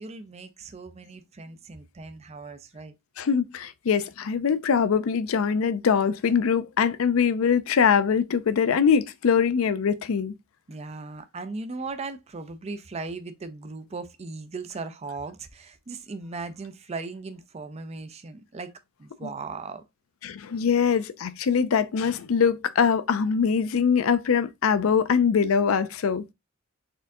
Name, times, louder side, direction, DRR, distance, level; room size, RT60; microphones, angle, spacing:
voice 1, 0.0-2.9 10.7-18.7 19.0-19.8, right 3 dB, 30° right, 0.5 m, -38 dB
voice 2, 3.2-10.3 20.2-26.2, left 6 dB, 80° left, 0.4 m, -23 dB
4.3 x 3.6 x 2.6 m
head